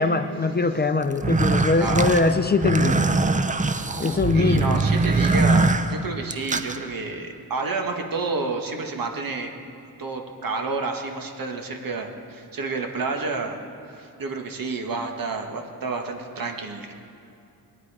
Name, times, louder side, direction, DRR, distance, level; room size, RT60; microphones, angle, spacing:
voice 1, 0.0-3.0 4.0-4.8, left 3 dB, 25° left, 9 dB, 0.6 m, -22 dB
sound 1, 1.1-6.8, right 3 dB, 20° right, 0.6 m, -22 dB
voice 2, 4.0-9.5 10.0-13.6 13.9-16.9, right 3 dB, 65° right, 3 dB, 1.7 m, -30 dB
21.5 x 9.7 x 4.9 m, 2.7 s
wide cardioid pair, 110°, 37 cm